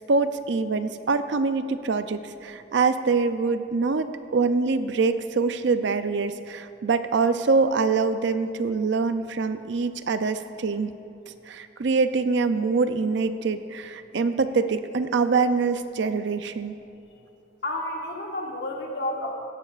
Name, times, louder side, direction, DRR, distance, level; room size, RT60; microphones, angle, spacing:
voice 1, 0.1-10.9 11.5-16.8, right 4 dB, 65° right, 11 dB, 0.4 m, -24 dB
voice 2, 17.6-19.3, left 1 dB, 60° left, 0 dB, 1.4 m, -30 dB
15.5 x 11.5 x 2.4 m, 2.8 s
head